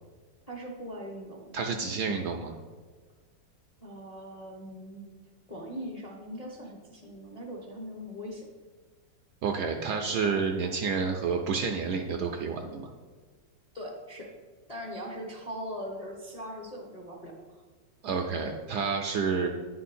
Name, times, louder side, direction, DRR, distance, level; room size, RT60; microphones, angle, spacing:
voice 1, 0.5-1.4 3.8-5.1 5.5-8.4 13.7-14.3 14.7-17.6, equal, 30° left, -2 dB, 0.7 m, -40 dB
voice 2, 1.5-2.6 9.4-12.9 18.0-19.5, right 5 dB, 70° right, 4 dB, 1.0 m, -29 dB
10.5 x 4.5 x 4.3 m, 1.4 s
omnidirectional pair, 2.2 m